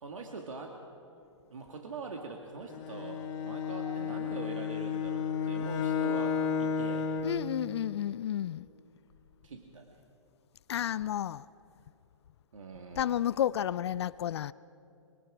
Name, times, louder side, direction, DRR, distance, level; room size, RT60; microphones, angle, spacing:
voice 1, 0.0-0.8 1.5-7.1 9.4-10.0 10.7-10.9 12.5-13.2, right 4 dB, 75° right, 2.2 m, -43 dB
Bowed string instrument, 2.7-7.4, left 6 dB, 35° left, 2.0 m, -32 dB
voice 2, 7.2-8.7 10.7-11.5 13.0-14.5, left 11 dB, 55° left, 0.5 m, -31 dB
24.5 x 23.5 x 5.0 m
hypercardioid pair, 135°, 17 cm